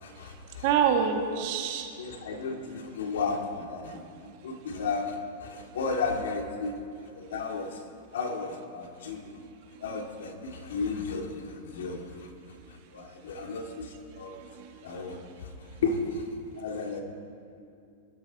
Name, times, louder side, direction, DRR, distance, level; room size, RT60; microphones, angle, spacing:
voice 1, 0.0-0.7 2.0-6.8 7.1-7.8 8.1-9.4 9.8-12.3 12.7-14.4 14.8-17.0, left 4 dB, 80° left, 2 dB, 2.5 m, -34 dB
voice 2, 0.6-1.9 3.9-4.0 9.7-9.8 14.4-14.8, right 7 dB, 55° right, 3 dB, 1.9 m, -27 dB
22.5 x 12.0 x 4.2 m, 2.5 s
hypercardioid pair, 140°, 0 cm